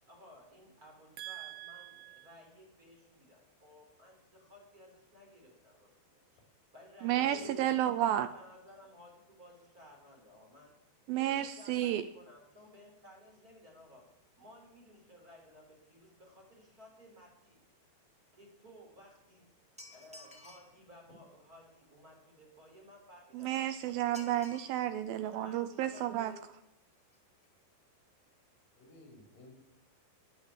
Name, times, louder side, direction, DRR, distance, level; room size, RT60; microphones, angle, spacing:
voice 1, 0.1-6.4 6.7-10.8 11.1-17.6 18.3-19.6 19.9-23.5 23.8-24.3 25.3-26.5, equal, 20° right, 0 dB, 3.8 m, -57 dB
voice 2, 1.2-2.3 7.0-8.3 11.1-12.0 23.3-26.3, right 12 dB, 85° right, 10 dB, 2.1 m, -32 dB
voice 3, 7.1-7.7 28.8-29.5, equal, 55° left, 3 dB, 5.2 m, -50 dB
sound 1, 19.8-20.8 24.1-24.9 25.2-25.3 26.2-26.3 26.6-26.7 27.0-27.2 27.4-27.5, left 1 dB, 5° right, 0.5 m, -53 dB
12.0 x 10.5 x 7.3 m, 0.82 s
omnidirectional pair, 4.9 m